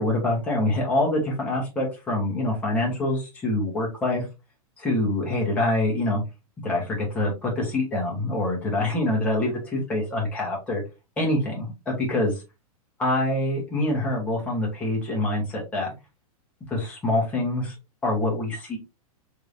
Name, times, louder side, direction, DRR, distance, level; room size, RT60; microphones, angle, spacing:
voice 1, 0.0-4.2 4.8-6.2 6.6-10.8 11.2-12.4 13.0-15.9 16.7-17.7 18.0-18.8, left 1 dB, 5° left, -3 dB, 1.0 m, -25 dB
3.3 x 3.3 x 2.5 m, 0.26 s
supercardioid pair, 175°, 19 cm